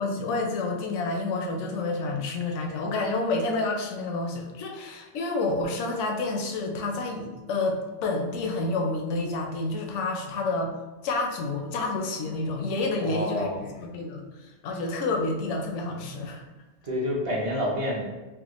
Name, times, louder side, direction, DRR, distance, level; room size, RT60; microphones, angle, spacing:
voice 1, 0.0-10.7 11.0-16.4, left 3 dB, 80° left, 2 dB, 0.9 m, -29 dB
voice 2, 13.0-13.6 16.8-18.0, equal, 35° right, -3 dB, 0.6 m, -28 dB
3.5 x 2.1 x 3.0 m, 1.2 s
omnidirectional pair, 1.2 m